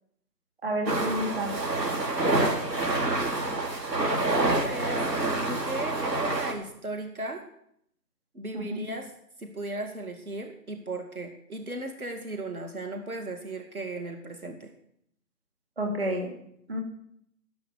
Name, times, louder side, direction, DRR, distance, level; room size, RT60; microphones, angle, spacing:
voice 1, 0.6-1.5 8.5-8.8 15.8-16.3 16.7-16.8, equal, 35° right, 1 dB, 2.6 m, -29 dB
sound 1, 0.9-6.5, right 2 dB, 85° right, 3.9 m, -27 dB
voice 2, 4.0-5.0 5.4-7.4 8.3-9.1 9.4-14.7, right 2 dB, 60° right, 4 dB, 2.3 m, -36 dB
18.0 x 6.3 x 8.2 m, 0.71 s
figure-of-eight pair, 180°, 48 cm